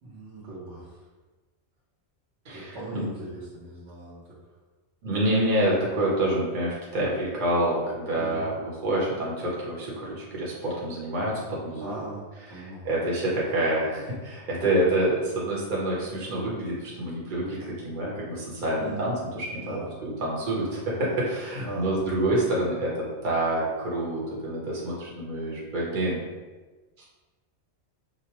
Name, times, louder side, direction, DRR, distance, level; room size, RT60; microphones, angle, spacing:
voice 1, 0.0-1.0 2.5-4.4 8.2-8.5 11.8-13.0 18.8-19.1 19.5-19.9 21.5-22.0, right 2 dB, 85° right, -8 dB, 1.2 m, -39 dB
voice 2, 2.4-3.1 5.0-11.9 12.5-17.6 17.8-26.2 27.0-27.1, right 1 dB, 45° right, -5 dB, 1.0 m, -27 dB
5.0 x 2.1 x 2.9 m, 1.3 s
omnidirectional pair, 1.2 m